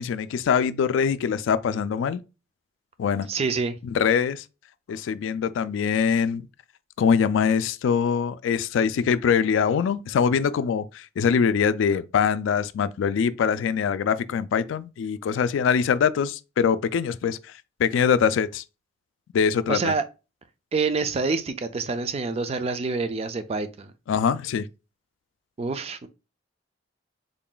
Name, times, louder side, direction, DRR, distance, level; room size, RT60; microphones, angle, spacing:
voice 1, 0.0-2.2 3.0-3.3 3.8-4.4 4.9-6.5 7.0-17.5 17.8-18.6 19.3-19.9 24.1-24.7, left 7 dB, 80° left, 0.3 m, -23 dB
voice 2, 3.3-3.8 19.7-20.0 20.7-23.9 25.6-26.1, right 4 dB, 35° right, 0.4 m, -27 dB
3.7 x 2.3 x 3.8 m
head